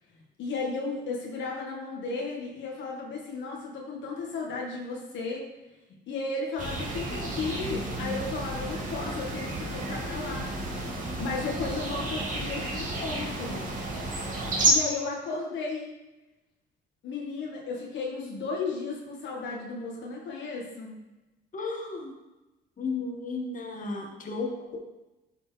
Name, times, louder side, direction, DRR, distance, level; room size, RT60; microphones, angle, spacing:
voice 1, 0.4-5.5 6.1-10.5 11.2-13.7 14.6-15.9 17.0-21.0, left 4 dB, 70° left, -2 dB, 1.6 m, -34 dB
sound 1, 6.6-14.7, right 2 dB, 40° right, 2.3 m, -31 dB
voice 2, 21.5-22.1 22.8-24.8, left 3 dB, 40° left, 0 dB, 1.6 m, -34 dB
11.5 x 4.3 x 3.3 m, 1.0 s
supercardioid pair, 70°, 20 cm